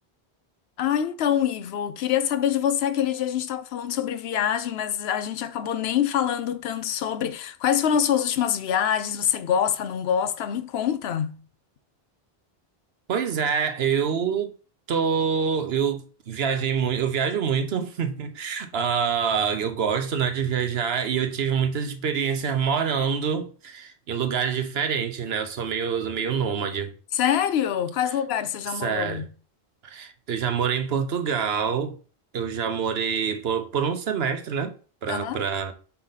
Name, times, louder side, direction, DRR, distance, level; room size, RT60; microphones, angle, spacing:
voice 1, 0.8-11.4 27.1-29.3 35.1-35.4, left 9 dB, 85° left, 0.9 m, -25 dB
voice 2, 13.1-14.5 14.9-26.9 28.8-29.2 29.8-31.9 32.3-34.7 35.0-35.7, right 7 dB, 80° right, 1.1 m, -26 dB
5.6 x 5.3 x 4.0 m
omnidirectional pair, 1.0 m